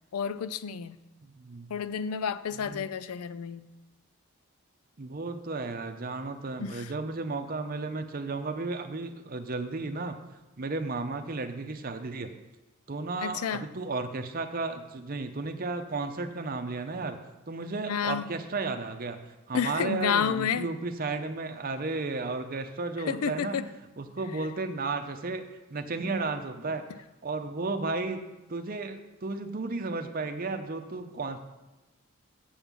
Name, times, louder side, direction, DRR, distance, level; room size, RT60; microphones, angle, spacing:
voice 1, 0.1-1.0 1.7-3.6 6.6-6.9 13.2-13.6 17.9-18.3 19.5-20.7 23.1-23.6, left 7 dB, 85° left, 15 dB, 0.4 m, -30 dB
voice 2, 1.2-1.7 2.6-2.9 5.0-10.2 10.6-12.3 12.9-17.2 17.5-19.2 19.5-23.6 24.0-25.4 25.7-26.8 27.2-28.2 28.5-31.4, right 3 dB, 40° right, 7 dB, 0.7 m, -33 dB
7.1 x 5.4 x 7.3 m, 1.0 s
head